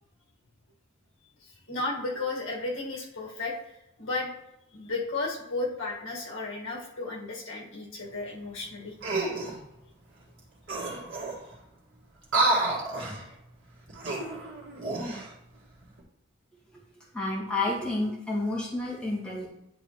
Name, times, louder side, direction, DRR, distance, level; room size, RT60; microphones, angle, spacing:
voice 1, 1.7-3.5 4.0-4.3 4.7-8.9, left 3 dB, 70° left, -2 dB, 1.7 m, -33 dB
sound 1, 9.0-9.6 10.4-10.5 10.7-11.5 12.2-13.2 13.9-15.3 15.8-16.0, right 2 dB, 65° right, 1.8 m, -29 dB
voice 2, 17.1-19.5, left 2 dB, 5° left, -6 dB, 1.7 m, -30 dB
10.0 x 4.0 x 3.1 m, 0.85 s
head